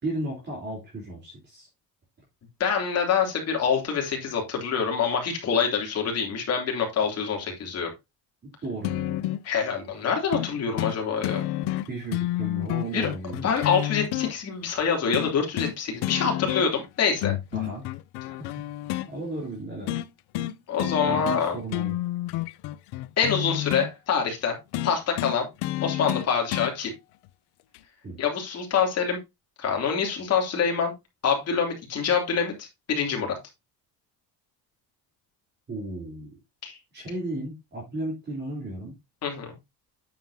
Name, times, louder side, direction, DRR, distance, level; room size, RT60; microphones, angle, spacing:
voice 1, 0.0-1.7 8.6-9.2 11.9-13.5 17.5-17.9 18.3-18.6 19.1-20.0 21.1-22.0 28.0-28.2 35.7-36.4 36.9-39.0, right 2 dB, 25° right, 3.8 m, -34 dB
voice 2, 2.6-7.9 9.5-11.4 12.9-13.1 13.4-17.3 20.7-21.6 23.2-24.6 24.8-25.5 25.8-26.9 28.2-29.2 29.6-30.9 31.2-33.4 36.6-36.7 39.2-39.5, left 6 dB, 40° left, 3.2 m, -26 dB
sound 1, 8.8-9.5 10.3-10.5 10.8-11.0 11.2-14.3 15.1-15.8 16.0-16.9 17.2-19.1 19.9-20.1 20.3-20.5 20.8-21.4 21.7-23.9 24.7-26.7 27.7-27.8, left 15 dB, 70° left, 0.7 m, -29 dB
9.1 x 7.5 x 2.8 m
cardioid pair, 175°, 40 cm